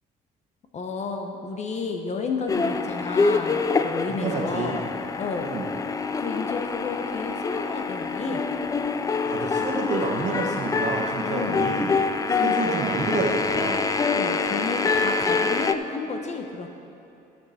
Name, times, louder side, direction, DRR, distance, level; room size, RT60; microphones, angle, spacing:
voice 1, 0.7-4.8 5.2-5.5 6.2-8.4 11.2-11.6 12.2-12.9 14.1-16.7, left 4 dB, 40° left, 4 dB, 0.9 m, -32 dB
sound 1, 2.5-15.7, left 4 dB, 20° left, 0.4 m, -26 dB
voice 2, 4.1-4.8 5.4-5.7 9.3-11.9 12.4-13.9, right 3 dB, 45° right, 0 dB, 1.4 m, -28 dB
14.0 x 6.2 x 4.2 m, 2.8 s
cardioid pair, 110°, 17 cm